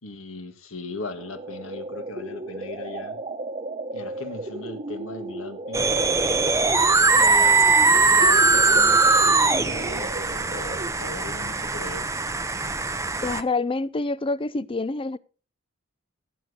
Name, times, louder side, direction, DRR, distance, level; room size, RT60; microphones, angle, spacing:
voice 1, 0.0-3.2 3.9-5.9 7.1-12.1, left 3 dB, 70° left, 1.6 m, -38 dB
sound 1, 1.2-11.1, right 2 dB, 30° right, 1.1 m, -35 dB
sound 2, 5.7-13.4, right 3 dB, 15° right, 0.7 m, -20 dB
voice 2, 13.2-15.2, left 3 dB, 25° left, 0.5 m, -27 dB
17.5 x 8.1 x 3.9 m
head